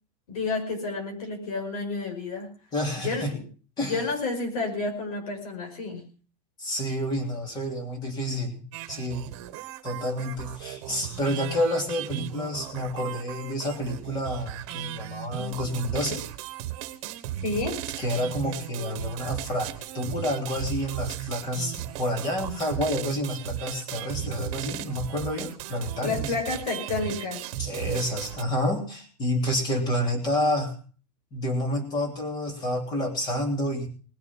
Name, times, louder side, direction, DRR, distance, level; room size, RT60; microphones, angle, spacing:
voice 1, 0.3-2.5 3.0-3.4 3.8-6.0 17.4-17.8 26.0-27.5, left 3 dB, 65° left, 3 dB, 5.6 m, -30 dB
voice 2, 2.7-3.3 3.8-4.0 6.6-9.3 9.8-16.2 18.0-26.3 27.6-30.7 31.3-33.9, left 1 dB, 20° left, 4 dB, 3.2 m, -29 dB
sound 1, 8.7-28.4, right 14 dB, 45° right, 1.5 m, -36 dB
20.0 x 7.8 x 7.4 m, 0.40 s
supercardioid pair, 180°, 20 cm